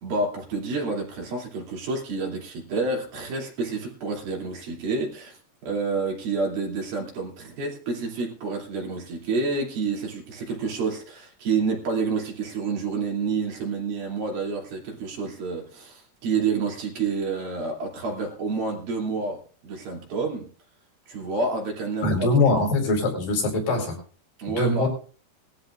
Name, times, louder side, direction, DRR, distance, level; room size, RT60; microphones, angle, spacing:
voice 1, 0.0-5.4 5.6-20.5 21.1-22.3 24.4-24.9, right 4 dB, 60° right, 0 dB, 4.6 m, -29 dB
voice 2, 22.0-24.0 24.5-24.9, left 2 dB, 60° left, 2 dB, 6.2 m, -22 dB
21.5 x 13.5 x 2.5 m, 0.38 s
omnidirectional pair, 4.8 m